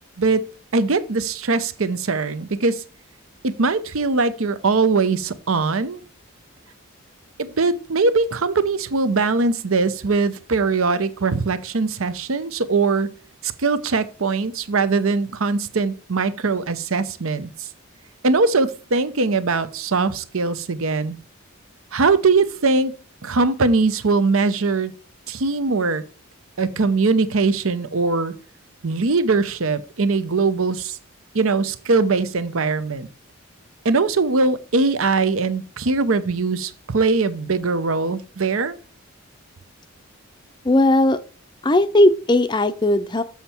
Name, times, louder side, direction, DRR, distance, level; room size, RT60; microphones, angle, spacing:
voice 1, 0.7-2.8 3.4-6.0 7.4-13.1 13.4-17.7 18.2-21.2 21.9-22.9 23.2-24.9 25.3-26.0 26.6-28.3 28.8-31.0 31.3-33.1 33.8-38.8, right 3 dB, 75° right, 0.8 m, -21 dB
voice 2, 40.6-41.2 41.6-43.2, left 1 dB, 20° left, 0.5 m, -17 dB
7.4 x 5.7 x 4.4 m
head